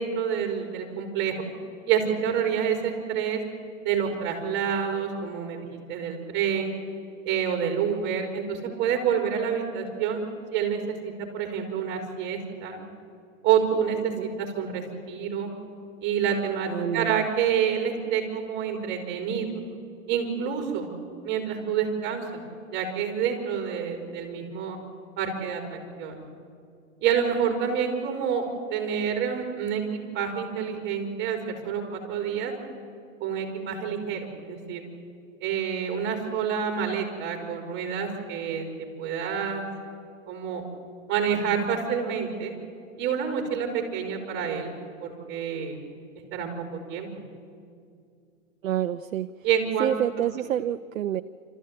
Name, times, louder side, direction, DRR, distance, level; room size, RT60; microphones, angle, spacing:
voice 1, 0.0-1.4 1.9-3.4 3.8-6.7 7.3-10.2 10.5-12.8 13.4-14.1 14.4-15.5 16.0-19.5 20.1-20.9 21.2-22.4 22.7-24.8 25.2-26.2 27.0-28.4 28.7-32.5 33.2-34.9 35.4-38.7 39.0-39.6 40.3-40.6 41.1-42.5 43.0-45.8 46.3-47.1 49.4-49.9, right 7 dB, 25° right, 3 dB, 4.1 m, -28 dB
voice 2, 16.7-17.3 48.6-49.3 49.8-51.2, right 11 dB, 75° right, 9 dB, 0.7 m, -28 dB
27.0 x 14.0 x 8.7 m, 2.3 s
hypercardioid pair, 130°, 40 cm